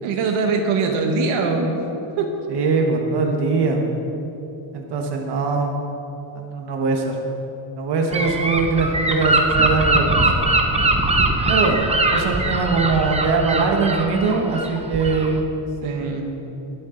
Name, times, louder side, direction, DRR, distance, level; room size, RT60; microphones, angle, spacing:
voice 1, 0.0-1.7 2.2-2.3 15.8-16.3, right 4 dB, 85° right, 2 dB, 1.5 m, -22 dB
voice 2, 2.5-3.8 4.7-5.7 6.3-7.2 7.8-10.5 11.5-11.8 12.1-15.4, right 4 dB, 55° right, 2 dB, 1.5 m, -21 dB
Gull seagull / Wind, 8.1-15.4, right 2 dB, 15° right, 0.6 m, -21 dB
21.0 x 7.4 x 3.9 m, 2.8 s
cardioid pair, 160°, 48 cm